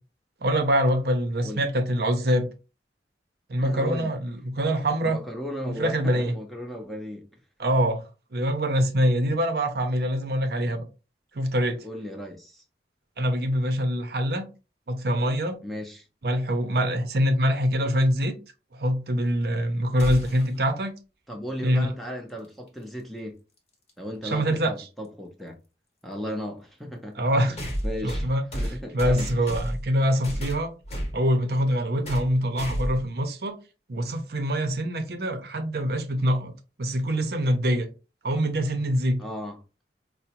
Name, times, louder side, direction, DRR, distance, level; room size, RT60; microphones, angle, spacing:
voice 1, 0.4-2.5 3.5-5.2 5.8-6.4 7.6-8.0 8.3-10.8 11.3-11.8 13.2-14.5 14.9-15.6 16.2-18.4 18.7-20.9 21.6-21.9 24.2-24.7 27.2-27.6 28.0-28.4 28.9-30.7 31.1-33.6 33.9-36.5 36.8-37.9 38.2-39.2, equal, 60° right, 0.6 m, -24 dB
voice 2, 3.6-4.1 5.0-7.3 11.8-12.6 15.6-16.1 21.3-23.4 24.0-25.6 26.0-27.2 27.5-28.3 28.5-29.3 39.2-39.6, equal, ahead, 0.6 m, -36 dB
sound 1, 20.0-20.6 22.7-22.8 23.9-24.0 27.6-29.9 30.2-31.2 32.0-32.3 32.6-33.0, equal, 35° left, 1.0 m, -31 dB
4.8 x 2.0 x 2.8 m
head